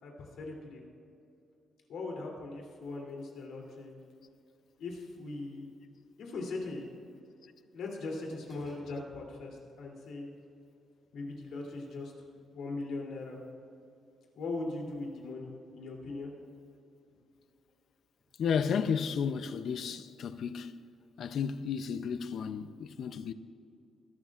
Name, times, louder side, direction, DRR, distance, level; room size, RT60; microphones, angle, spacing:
voice 1, 0.0-0.8 1.9-4.0 4.8-5.7 6.2-6.9 7.7-10.3 11.1-12.1 12.5-13.4 14.3-16.3, left 3 dB, 70° left, 2.9 m, -40 dB
sound 1, 4.6-6.0 8.5-10.1 10.4-10.5 11.0-12.0 12.3-12.4 12.9-13.0 13.4-14.8 16.4-16.5 18.2-20.0, equal, 20° left, 3.5 m, -61 dB
voice 2, 18.4-20.7 21.2-23.3, left 6 dB, 55° left, 0.5 m, -33 dB
21.0 x 12.5 x 2.4 m
cardioid pair, 180°, 0 cm